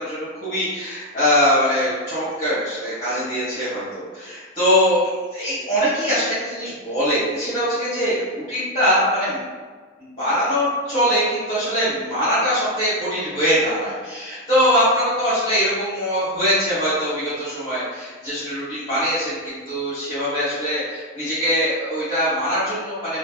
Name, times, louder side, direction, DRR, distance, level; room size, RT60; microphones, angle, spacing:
voice 1, 0.0-5.0 5.3-9.4 10.0-23.2, equal, 35° left, -13 dB, 1.3 m, -22 dB
3.0 x 2.5 x 3.3 m, 1.5 s
head